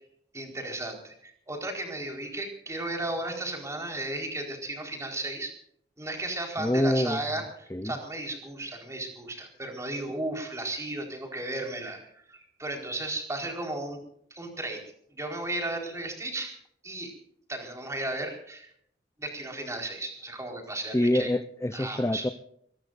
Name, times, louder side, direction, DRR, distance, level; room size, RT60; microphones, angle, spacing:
voice 1, 0.3-5.5 6.0-14.0 14.3-14.8 15.1-17.1 17.5-18.7 19.2-21.3 21.7-22.3, right 2 dB, 15° right, 2 dB, 4.5 m, -35 dB
voice 2, 6.6-7.2 7.7-8.0 20.9-22.3, left 1 dB, 15° left, 10 dB, 0.7 m, -26 dB
24.0 x 21.0 x 2.6 m, 0.68 s
head